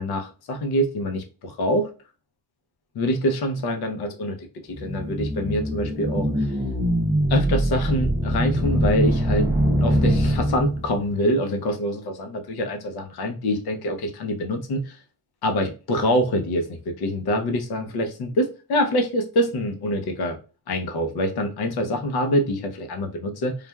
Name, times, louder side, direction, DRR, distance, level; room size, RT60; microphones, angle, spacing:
voice 1, 0.0-1.9 2.9-4.5 4.8-6.5 7.3-9.5 9.8-15.0 15.4-20.4 20.7-23.6, equal, 85° left, 0.8 m, -25 dB
sound 1, 4.7-11.1, equal, 10° right, 0.5 m, -23 dB
3.2 x 2.4 x 2.2 m
wide cardioid pair, 145°, 37 cm